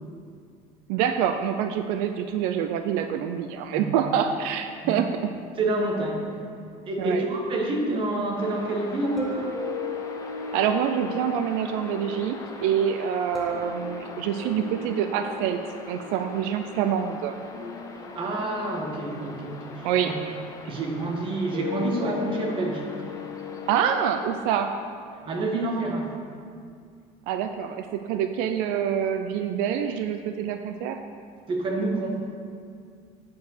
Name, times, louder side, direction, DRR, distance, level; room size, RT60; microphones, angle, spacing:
voice 1, 0.9-5.3 7.0-7.2 10.5-15.6 15.9-17.3 19.8-20.1 23.7-24.7 27.3-31.0, right 8 dB, 85° right, 7 dB, 0.5 m, -26 dB
voice 2, 5.6-6.3 6.9-9.5 17.9-20.1 20.7-22.8 25.2-26.1 31.5-32.2, right 2 dB, 35° right, 0 dB, 1.4 m, -28 dB
sound 1, 8.4-24.3, left 4 dB, 25° left, 0.6 m, -43 dB
sound 2, 9.2-10.3 13.3-14.4, right 1 dB, 5° right, 1.2 m, -36 dB
sound 3, 9.5-25.5, left 5 dB, 60° left, 1.8 m, -39 dB
8.2 x 4.7 x 6.5 m, 2.2 s
cardioid pair, 145°, 14 cm